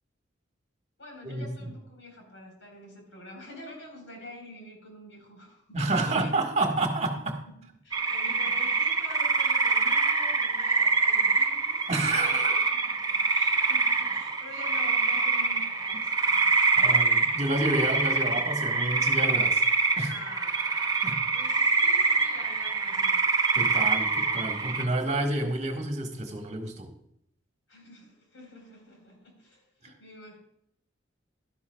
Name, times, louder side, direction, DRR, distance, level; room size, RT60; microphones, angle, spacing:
voice 1, 1.0-6.3 7.8-12.4 12.7-16.6 20.0-23.4 27.7-30.4, left 1 dB, 85° left, 4.3 m, -47 dB
voice 2, 5.7-7.4 11.9-12.6 16.8-19.6 20.0-20.1 21.0-21.2 23.5-26.9 29.8-29.9, right 2 dB, 35° right, 1.6 m, -29 dB
sound 1, 7.9-24.9, right 4 dB, 20° right, 0.9 m, -25 dB
12.5 x 11.5 x 2.3 m
head